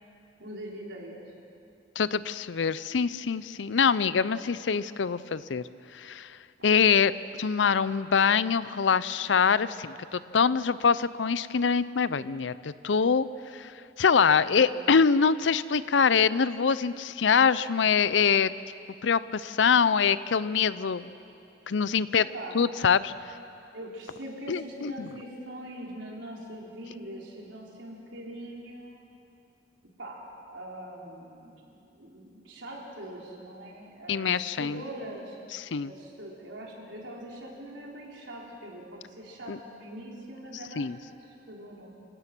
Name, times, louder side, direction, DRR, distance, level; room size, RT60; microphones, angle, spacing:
voice 1, 0.4-1.2 6.6-6.7 14.3-15.0 22.1-22.6 23.7-29.0 30.0-30.2 30.5-35.4 35.8-40.9 41.2-41.9, right 1 dB, 90° right, -2 dB, 4.0 m, -42 dB
voice 2, 2.0-5.6 5.9-6.4 6.6-7.1 7.4-13.7 14.0-18.5 19.0-21.1 21.7-22.3 22.5-23.1 24.5-25.1 34.1-34.8 35.5-35.9 39.5-39.6 40.8-41.0, left 6 dB, 80° left, 16 dB, 0.6 m, -24 dB
27.5 x 17.0 x 6.1 m, 2.7 s
head